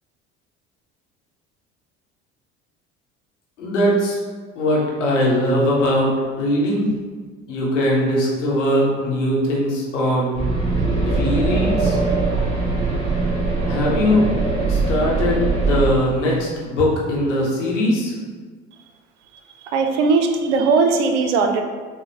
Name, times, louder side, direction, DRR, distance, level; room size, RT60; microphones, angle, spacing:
voice 1, 3.6-4.2 4.6-6.9 7.5-10.4 11.0-12.0 13.7-14.3 14.7-18.1, equal, 90° left, -4 dB, 0.9 m, -20 dB
sound 1, 10.3-15.9, right 3 dB, 15° right, 1.4 m, -21 dB
voice 2, 19.7-21.6, right 4 dB, 80° right, 5 dB, 0.5 m, -18 dB
5.0 x 2.0 x 2.8 m, 1.5 s
hypercardioid pair, 65°, 35 cm